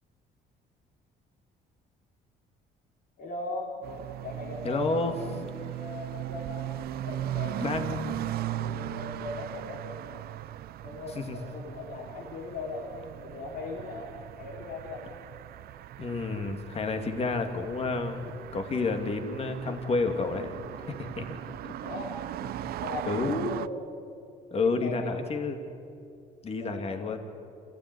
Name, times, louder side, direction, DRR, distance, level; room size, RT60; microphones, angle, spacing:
voice 1, 3.2-3.9 4.2-6.7 7.0-10.3 10.8-15.1 21.8-22.2 22.8-23.7 24.5-25.3 26.5-27.1, left 2 dB, 60° left, -2 dB, 4.4 m, -39 dB
sound 1, 3.8-23.7, right 13 dB, 65° right, 0.6 m, -38 dB
voice 2, 4.6-5.1 7.6-8.3 11.2-11.4 16.0-20.5 20.9-21.4 21.6-21.7 23.1-23.5 24.5-25.6 26.4-27.2, left 3 dB, 35° left, 6 dB, 2.6 m, -30 dB
26.5 x 16.0 x 9.8 m, 2.5 s
cardioid pair, 110°, 17 cm